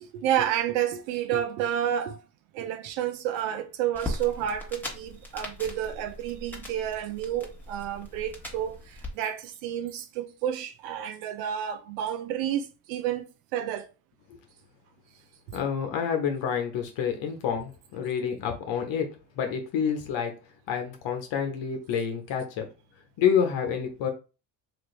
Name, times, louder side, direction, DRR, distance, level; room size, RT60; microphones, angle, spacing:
voice 1, 0.0-2.2 2.5-13.9, right 10 dB, 90° right, 0.6 m, -30 dB
sound 1, 3.9-9.1, left 1 dB, 5° left, 1.1 m, -39 dB
voice 2, 15.5-19.1 19.4-20.3 20.7-22.7 23.2-24.1, left 7 dB, 65° left, 1.0 m, -28 dB
3.1 x 2.5 x 3.1 m
supercardioid pair, 80°, 49 cm